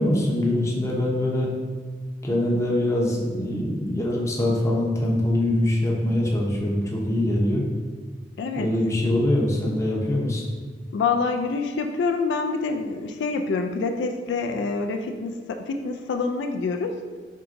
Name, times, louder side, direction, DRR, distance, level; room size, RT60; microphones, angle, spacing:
voice 1, 0.0-1.5 2.2-7.6 8.6-10.4, left 1 dB, 15° left, -3 dB, 0.6 m, -23 dB
voice 2, 8.4-8.8 10.9-17.0, left 4 dB, 75° left, 5 dB, 0.3 m, -26 dB
4.6 x 3.8 x 2.5 m, 1.5 s
head